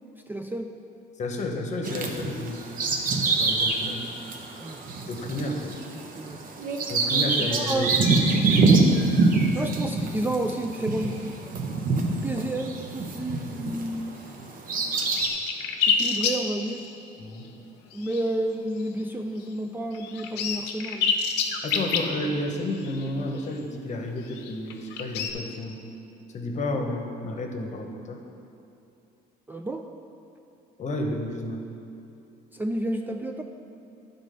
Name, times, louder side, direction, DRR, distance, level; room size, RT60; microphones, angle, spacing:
voice 1, 0.3-0.7 4.6-4.8 5.4-5.7 5.9-6.4 7.4-8.0 9.5-11.4 12.1-14.2 15.9-16.9 17.9-21.1 29.5-29.8 32.5-33.4, right 1 dB, 10° right, 3 dB, 0.3 m, -31 dB
voice 2, 1.2-2.6 3.4-4.1 5.1-5.8 6.9-8.1 8.5-8.7 12.1-12.3 17.2-17.5 21.6-25.7 26.3-28.2 30.8-31.6, left 1 dB, 45° left, 3 dB, 1.0 m, -31 dB
Bird vocalization bird call bird song, 1.8-13.9 14.4-15.3, right 3 dB, 55° right, 0.9 m, -25 dB
sound 1, 14.5-14.6 14.7-17.0 17.3-17.5 17.9-18.4 18.8-19.0 19.4-19.5 19.9-23.6 24.2-25.3, left 5 dB, 90° left, 0.7 m, -28 dB
10.0 x 4.0 x 5.3 m, 2.8 s
cardioid pair, 110°, 17 cm